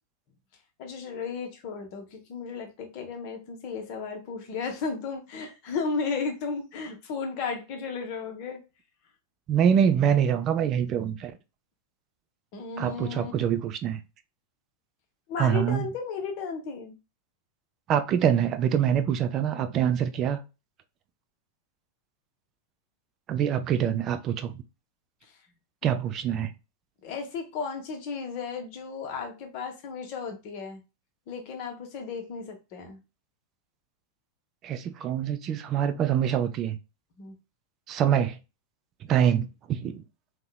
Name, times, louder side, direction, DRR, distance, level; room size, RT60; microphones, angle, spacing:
voice 1, 0.8-8.6 12.5-13.3 15.3-17.0 27.0-30.8 31.3-33.0 37.2-37.3, left 5 dB, 45° left, 0.6 m, -34 dB
voice 2, 9.5-11.3 12.8-14.0 15.4-15.8 17.9-20.4 23.3-24.6 25.8-26.5 34.6-36.8 37.9-38.4 39.1-40.0, right 9 dB, 35° right, 0.3 m, -25 dB
2.7 x 2.0 x 2.2 m
figure-of-eight pair, 90°, 0 cm